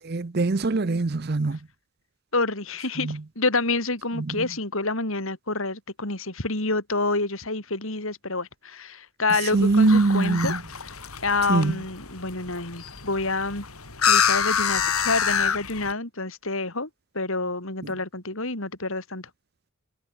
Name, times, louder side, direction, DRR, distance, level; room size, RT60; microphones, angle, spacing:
voice 1, 0.1-1.6 3.1-3.2 9.5-10.6 11.5-11.7, right 3 dB, 45° right, 0.6 m, -22 dB
voice 2, 2.3-10.8 11.2-13.7 14.1-16.9 17.1-19.3, left 3 dB, 70° left, 4.1 m, -28 dB
sound 1, 9.5-15.9, left 7 dB, 85° left, 7.2 m, -27 dB
head